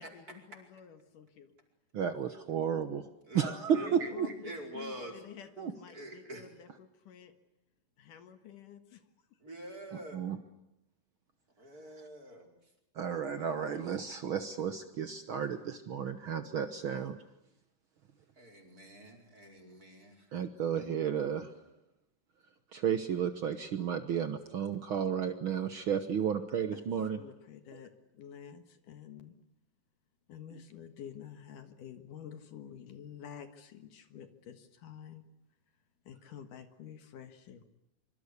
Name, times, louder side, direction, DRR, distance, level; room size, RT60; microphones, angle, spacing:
voice 1, 0.0-1.5 3.7-7.3 8.0-9.0 26.7-29.4 30.3-35.3 36.1-37.6, left 8 dB, 65° left, 9 dB, 3.0 m, -50 dB
voice 2, 1.9-3.1 3.3-4.3 5.6-5.7 9.9-10.4 12.0-12.1 12.9-17.2 20.3-21.5 22.7-27.2 27.7-27.8, right 8 dB, 80° right, 9 dB, 1.1 m, -33 dB
voice 3, 3.7-4.1 4.4-5.5 5.9-6.5 9.4-10.2 11.6-12.5 18.4-20.3, right 1 dB, 25° right, 3 dB, 5.2 m, -45 dB
25.0 x 25.0 x 8.3 m, 0.87 s
omnidirectional pair, 4.2 m